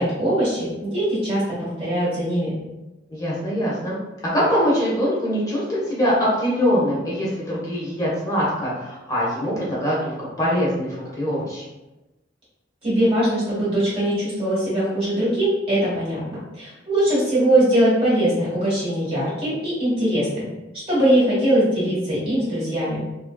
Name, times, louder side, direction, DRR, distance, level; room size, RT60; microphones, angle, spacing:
voice 1, 0.0-2.6 12.8-20.4 20.9-23.0, right 1 dB, 30° right, -9 dB, 1.2 m, -21 dB
voice 2, 3.1-4.0 4.3-11.6, equal, 20° left, -7 dB, 1.1 m, -23 dB
3.3 x 2.6 x 2.2 m, 1.0 s
head